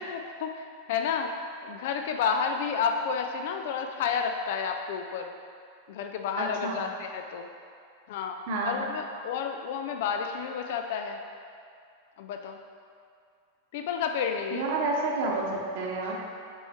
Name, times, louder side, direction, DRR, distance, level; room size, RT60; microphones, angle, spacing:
voice 1, 0.0-1.3 1.6-5.3 5.9-7.5 8.1-8.4 8.6-11.2 12.2-12.6 13.7-14.7, left 6 dB, 50° left, 4 dB, 0.3 m, -31 dB
voice 2, 6.4-6.8 8.5-8.8 14.5-16.1, right 3 dB, 50° right, -2 dB, 1.0 m, -29 dB
5.3 x 4.3 x 4.5 m, 2.3 s
figure-of-eight pair, 90°, 0 cm